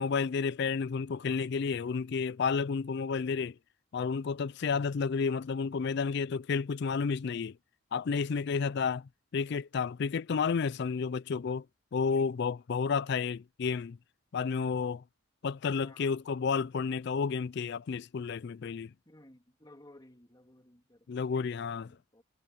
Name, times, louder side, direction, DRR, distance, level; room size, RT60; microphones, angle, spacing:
voice 1, 0.0-3.6 3.9-7.6 7.9-11.7 11.9-14.0 14.3-15.0 15.4-18.9 21.1-22.0, left 5 dB, 55° left, 0.4 m, -31 dB
voice 2, 19.1-22.2, left 1 dB, 20° left, 2.6 m, -58 dB
head